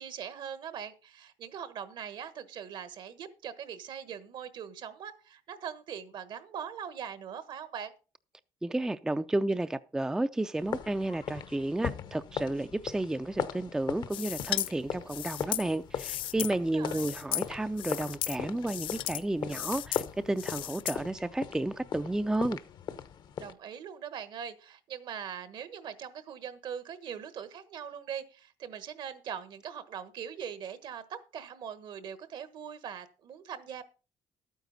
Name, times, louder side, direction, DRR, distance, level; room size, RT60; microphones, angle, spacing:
voice 1, 0.0-7.9 16.5-17.1 23.4-33.8, right 8 dB, 65° right, 1.2 m, -41 dB
voice 2, 8.6-22.6, right 2 dB, 5° right, 0.4 m, -32 dB
sound 1, 10.6-23.5, left 8 dB, 60° left, 0.9 m, -39 dB
sound 2, 14.1-14.7 15.1-16.5 16.8-17.5 17.8-18.4 18.6-19.2 19.5-20.1 20.4-21.0, left 13 dB, 75° left, 0.5 m, -35 dB
12.0 x 9.2 x 4.0 m
cardioid pair, 95°, 9 cm